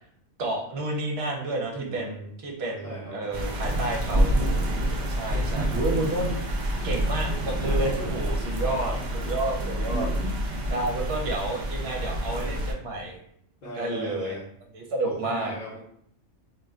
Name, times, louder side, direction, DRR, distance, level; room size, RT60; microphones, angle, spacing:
voice 1, 0.4-4.3 5.2-6.4 6.8-8.9 9.3-10.1 10.7-13.2 13.8-14.3 14.7-15.5, right 2 dB, 60° right, 0 dB, 0.8 m, -30 dB
voice 2, 1.7-2.2 2.8-4.1 4.8-5.4 7.0-7.2 7.6-9.1 9.8-10.1 10.8-10.9 11.8-12.5 13.6-14.4 15.1-15.8, right 1 dB, 45° left, -9 dB, 0.8 m, -39 dB
sound 1, 3.3-12.7, right 1 dB, 90° right, 0.4 m, -27 dB
2.4 x 2.1 x 3.5 m, 0.67 s
omnidirectional pair, 1.4 m